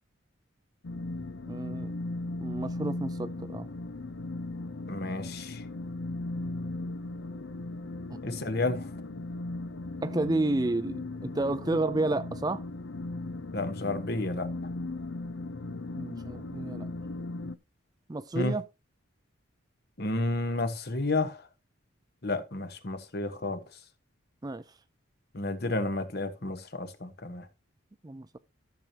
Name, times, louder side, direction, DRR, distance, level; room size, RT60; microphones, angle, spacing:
sound 1, 0.8-17.6, left 2 dB, 70° left, 0.6 m, -37 dB
voice 1, 1.5-1.9 2.4-3.7 8.1-8.6 10.0-12.6 16.0-16.9 18.1-18.6 24.4-24.6 28.0-28.4, right 2 dB, 20° right, 0.4 m, -31 dB
voice 2, 4.9-5.6 8.2-8.9 13.5-14.5 18.3-18.5 20.0-21.4 22.2-23.6 25.3-27.4, left 2 dB, 50° left, 1.2 m, -31 dB
13.0 x 6.8 x 2.9 m
head